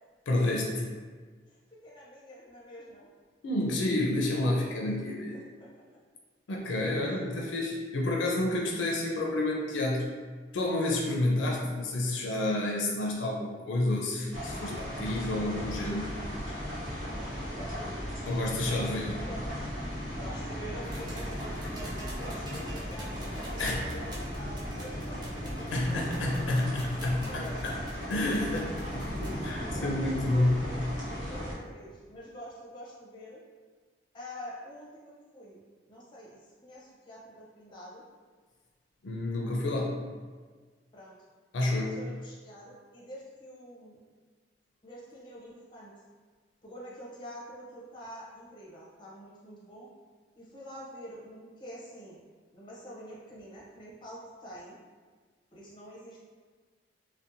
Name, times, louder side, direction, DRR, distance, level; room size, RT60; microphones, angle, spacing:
voice 1, 0.3-0.8 3.4-5.3 6.5-10.1 10.5-16.1 18.3-19.2 23.6-23.8 25.7-27.7 28.1-29.1 29.4-30.6 39.0-40.0 41.5-42.0, left 1 dB, 80° left, -2 dB, 0.4 m, -29 dB
voice 2, 1.5-3.1 5.3-5.7 7.1-7.2 16.9-19.5 20.2-26.0 27.0-27.6 29.4-33.4 34.1-38.0 40.9-41.2 41.6-44.0 44.8-45.9 46.6-49.9 50.3-52.2 52.5-54.8 55.5-56.2, equal, 25° left, -6 dB, 0.6 m, -47 dB
sound 1, 14.3-31.5, equal, 85° right, 1.0 m, -36 dB
sound 2, 20.8-29.5 30.7-30.8, right 1 dB, 25° right, 0.4 m, -47 dB
2.7 x 2.1 x 2.5 m, 1.5 s
head